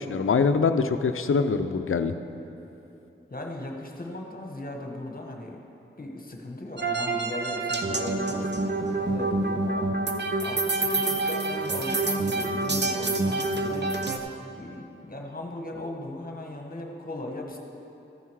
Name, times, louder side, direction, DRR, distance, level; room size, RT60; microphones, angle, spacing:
voice 1, 0.0-2.1, left 5 dB, 80° left, 9 dB, 0.5 m, -24 dB
voice 2, 3.3-5.6 6.0-9.9 10.4-13.9 14.6-17.6, left 1 dB, 45° left, 1 dB, 1.2 m, -38 dB
sound 1, 6.8-14.2, right 2 dB, 55° right, 0.7 m, -27 dB
14.0 x 5.7 x 4.7 m, 2.9 s
wide cardioid pair, 40°, 21 cm